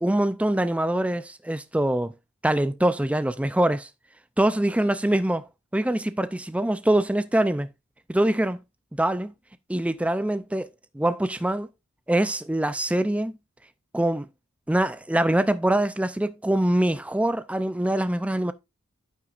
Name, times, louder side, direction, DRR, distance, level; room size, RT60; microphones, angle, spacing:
voice 1, 0.0-2.1 2.4-3.9 4.4-5.4 5.7-7.7 8.1-8.6 9.0-9.3 9.7-10.7 10.9-11.7 12.1-13.3 13.9-14.3 14.7-18.5, right 1 dB, 5° right, 0.4 m, -24 dB
9.2 x 8.6 x 2.5 m
head